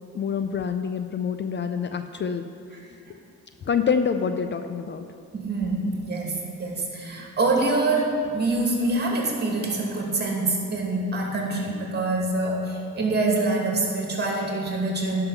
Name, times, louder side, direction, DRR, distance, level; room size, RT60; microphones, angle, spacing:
voice 1, 0.1-2.4 3.7-5.0, left 6 dB, 40° left, 8 dB, 0.5 m, -26 dB
voice 2, 5.3-15.3, right 2 dB, 35° right, -1 dB, 2.3 m, -25 dB
11.5 x 5.7 x 5.7 m, 2.3 s
cardioid pair, 90°, 30 cm